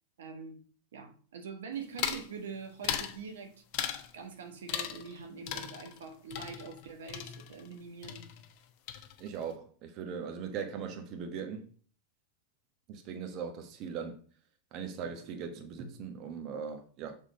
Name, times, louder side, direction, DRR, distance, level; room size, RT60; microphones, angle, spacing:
voice 1, 0.2-0.6 0.9-3.6 4.1-8.3, right 5 dB, 90° right, 1.3 m, -44 dB
sound 1, 2.0-2.3 2.8-3.2 3.7-4.1 4.7-5.2 5.5-7.8 8.0-8.6 8.9-9.4, left 10 dB, 55° left, 0.9 m, -37 dB
voice 2, 9.2-11.7 12.9-14.2 14.7-17.2, right 6 dB, 45° right, 1.2 m, -39 dB
6.6 x 3.7 x 5.1 m
supercardioid pair, 130°, 0 cm